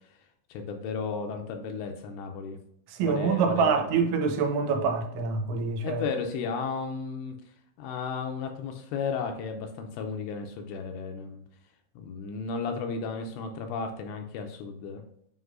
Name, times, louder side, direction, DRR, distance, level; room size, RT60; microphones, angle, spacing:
voice 1, 0.5-2.6 3.0-4.0 5.8-7.3 7.8-11.4 12.0-15.0, left 5 dB, 80° left, 2.6 m, -34 dB
voice 2, 2.9-6.0, right 5 dB, 85° right, 3.1 m, -26 dB
7.9 x 5.1 x 2.6 m
omnidirectional pair, 5.4 m